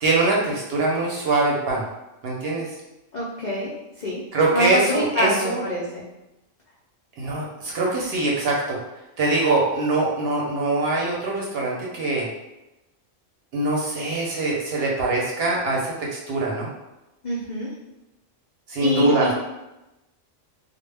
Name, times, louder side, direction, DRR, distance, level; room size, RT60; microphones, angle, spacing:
voice 1, 0.0-1.8 2.2-2.7 4.3-5.6 7.2-8.8 9.2-12.3 13.5-16.7 18.7-19.3, right 2 dB, 60° right, -3 dB, 0.7 m, -23 dB
voice 2, 3.1-3.7 4.0-4.2 4.5-6.0 17.2-17.7 18.8-19.3, left 1 dB, 70° left, -6 dB, 0.4 m, -25 dB
2.1 x 2.1 x 3.3 m, 0.96 s
omnidirectional pair, 1.3 m